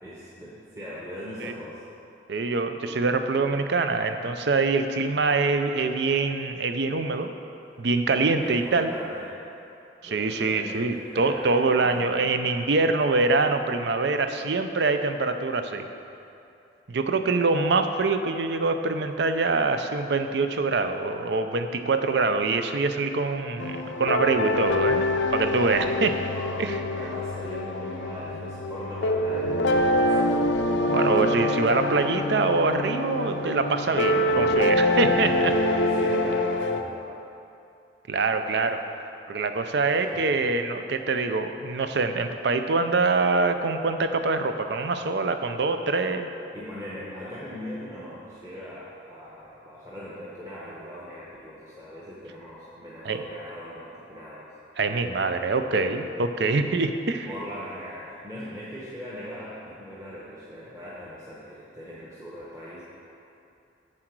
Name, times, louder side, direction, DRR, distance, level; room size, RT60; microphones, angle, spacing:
voice 1, 0.0-1.8 5.3-5.4 8.3-9.3 10.0-12.1 23.4-24.0 26.2-30.5 33.9-34.3 35.2-37.1 39.9-40.3 46.5-54.5 57.2-62.8, equal, 15° right, -8 dB, 1.0 m, -40 dB
voice 2, 2.3-7.3 7.8-8.9 10.0-15.9 16.9-26.2 26.6-26.8 30.8-35.5 38.1-38.8 39.3-46.3 53.1-53.2 54.8-57.3, right 3 dB, 65° right, 8 dB, 0.5 m, -24 dB
sound 1, 23.6-36.8, left 1 dB, 80° left, 0.5 m, -25 dB
7.6 x 7.6 x 4.6 m, 2.7 s
head